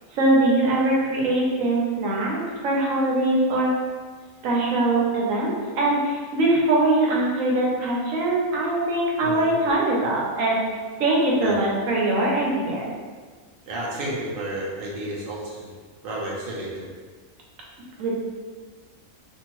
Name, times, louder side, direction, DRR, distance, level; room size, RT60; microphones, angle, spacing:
voice 1, 0.1-3.7 4.4-10.6 11.0-12.8 18.0-18.2, right 2 dB, 85° right, -3 dB, 1.1 m, -22 dB
voice 2, 9.2-9.6 11.4-11.5 13.7-15.7 16.0-16.9, right 1 dB, 55° right, -4 dB, 0.7 m, -31 dB
2.7 x 2.5 x 3.0 m, 1.5 s
omnidirectional pair, 1.3 m